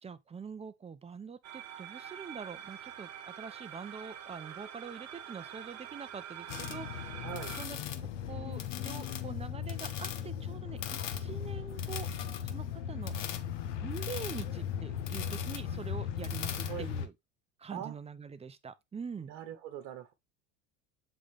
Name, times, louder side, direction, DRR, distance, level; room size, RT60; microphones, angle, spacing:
voice 1, 0.0-7.2 7.6-7.8 8.2-12.1 12.4-13.3 13.8-17.1 17.6-19.3, right 6 dB, 15° right, 0.8 m, -44 dB
sound 1, 1.4-7.7, right 9 dB, 45° right, 1.3 m, -45 dB
sound 2, 6.5-17.1, left 9 dB, 80° left, 1.1 m, -37 dB
voice 2, 7.2-7.5 16.7-16.9 17.7-18.0 19.3-20.1, right 11 dB, 65° right, 1.2 m, -41 dB
7.7 x 4.0 x 3.5 m
hypercardioid pair, 100°, 36 cm